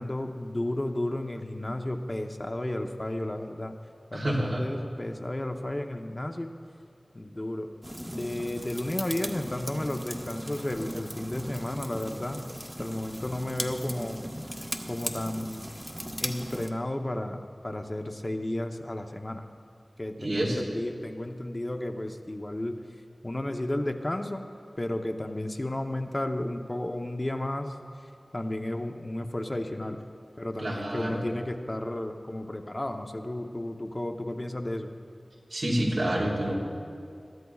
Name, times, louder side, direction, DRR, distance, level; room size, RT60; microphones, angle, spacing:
voice 1, 0.0-3.7 4.1-6.5 7.1-7.7 8.1-12.4 12.8-14.6 14.9-15.7 16.2-19.5 20.0-22.8 23.2-24.5 24.8-27.7 28.0-30.0 30.4-34.9, left 1 dB, 35° left, 4 dB, 0.8 m, -33 dB
voice 2, 4.1-4.6 20.2-20.6 30.6-31.2 35.5-36.5, right 1 dB, 85° right, -5 dB, 3.1 m, -28 dB
sound 1, 7.8-16.7, equal, 10° right, 1.0 m, -38 dB
22.0 x 13.0 x 2.4 m, 2.4 s
wide cardioid pair, 55°, 0 cm